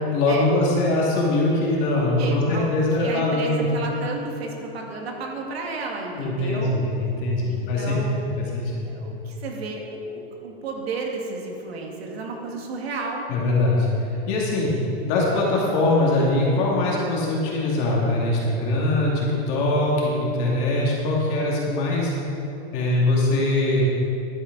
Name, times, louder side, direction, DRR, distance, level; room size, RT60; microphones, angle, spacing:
voice 1, 0.1-3.7 6.1-8.9 13.3-14.7 15.0-22.1 22.7-23.9, left 2 dB, 35° left, -4 dB, 2.3 m, -22 dB
voice 2, 2.2-6.8 7.5-8.4 8.9-13.3, right 3 dB, 75° right, 0 dB, 2.1 m, -32 dB
11.5 x 9.7 x 4.1 m, 2.9 s
supercardioid pair, 170°, 31 cm